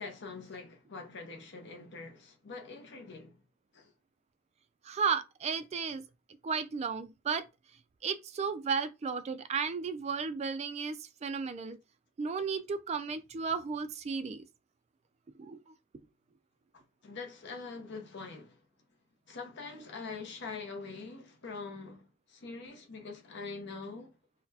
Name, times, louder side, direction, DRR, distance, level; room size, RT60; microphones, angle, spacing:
voice 1, 0.0-3.4 3.7-3.9 16.7-18.6 19.3-24.2, left 4 dB, 60° left, 0.7 m, -44 dB
voice 2, 4.8-6.0 6.4-7.4 8.0-11.8 12.2-14.4 15.4-15.7, right 5 dB, 30° right, 0.3 m, -34 dB
3.9 x 2.1 x 2.7 m
head